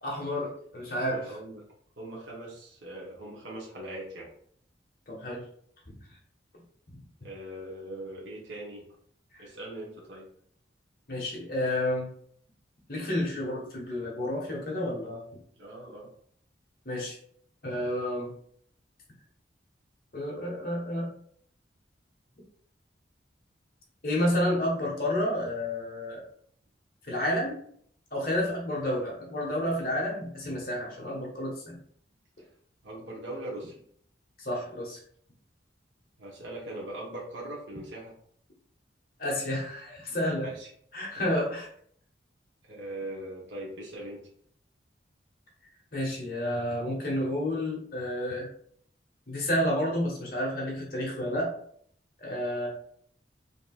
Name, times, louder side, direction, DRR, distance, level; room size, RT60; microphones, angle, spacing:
voice 1, 0.0-1.3 5.1-5.4 5.9-6.0 9.3-9.4 11.1-12.1 12.9-15.2 16.8-17.2 17.6-18.3 20.1-21.1 24.0-26.2 27.0-27.6 28.1-31.8 34.4-35.0 39.2-40.5 40.9-41.7 45.9-48.5 49.3-51.5 52.2-52.7, left 1 dB, 50° left, -3 dB, 1.5 m, -30 dB
voice 2, 1.0-1.7 2.0-4.3 7.2-8.9 9.4-10.3 15.6-16.1 32.4-32.5 32.8-33.8 36.2-38.1 40.4-40.7 42.6-44.3, right 1 dB, 85° right, -4 dB, 1.3 m, -40 dB
5.1 x 2.9 x 2.5 m, 0.62 s
head